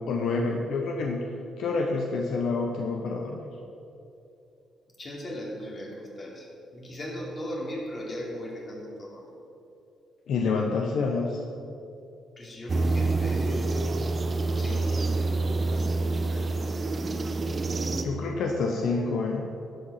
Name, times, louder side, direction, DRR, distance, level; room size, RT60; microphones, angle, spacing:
voice 1, 0.0-3.5 10.3-11.4 18.0-19.5, left 4 dB, 75° left, 2 dB, 1.0 m, -28 dB
voice 2, 5.0-9.3 12.4-14.0 14.6-15.4 16.2-16.5, equal, 35° left, -2 dB, 3.1 m, -38 dB
sound 1, 12.7-18.0, right 3 dB, 35° right, 1.0 m, -27 dB
12.0 x 8.5 x 5.8 m, 2.7 s
cardioid pair, 90°, 0 cm